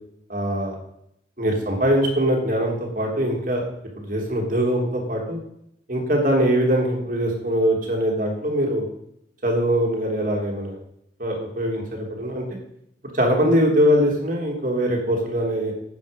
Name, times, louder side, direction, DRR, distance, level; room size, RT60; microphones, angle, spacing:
voice 1, 0.3-0.8 1.4-3.6 4.0-5.4 5.9-8.9 9.4-10.7 11.2-12.4 13.1-15.7, equal, 45° right, 0 dB, 3.2 m, -22 dB
11.5 x 9.1 x 5.4 m, 0.74 s
head